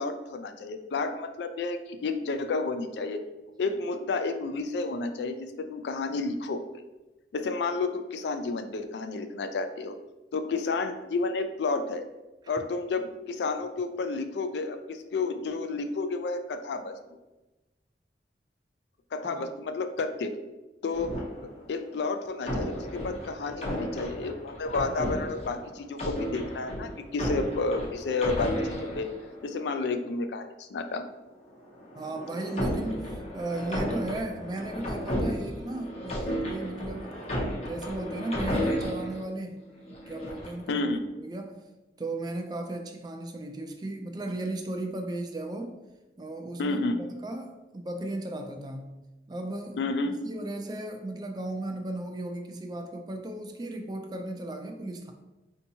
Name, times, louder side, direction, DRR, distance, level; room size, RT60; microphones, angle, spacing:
voice 1, 0.0-3.2 3.6-6.6 7.3-9.9 10.3-12.0 12.5-16.9 19.1-20.4 20.8-29.1 29.4-31.1 40.7-41.0 46.6-47.0 49.8-50.1, left 3 dB, 75° left, 8 dB, 0.3 m, -31 dB
sound 1, 20.9-21.8 22.4-29.7 31.6-39.2 39.8-40.6, equal, 35° left, 0.6 m, -33 dB
voice 2, 31.9-37.3 37.6-40.9 41.2-41.6 42.0-45.8 46.2-49.0 49.3-55.1, right 2 dB, 25° right, 4 dB, 0.3 m, -36 dB
4.5 x 2.8 x 2.7 m, 1.0 s
head